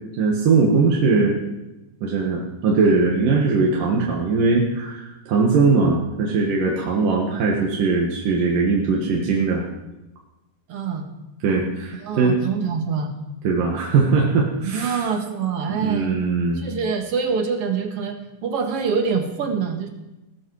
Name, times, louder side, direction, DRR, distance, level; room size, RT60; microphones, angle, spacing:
voice 1, 0.2-1.4 2.0-9.6 11.4-12.4 13.4-15.1 15.8-16.6, right 4 dB, 75° right, -2 dB, 3.3 m, -20 dB
voice 2, 10.7-11.1 12.0-13.1 14.6-16.2 16.6-19.9, right 5 dB, 50° right, 4 dB, 2.3 m, -25 dB
18.0 x 13.0 x 4.9 m, 0.98 s
omnidirectional pair, 3.9 m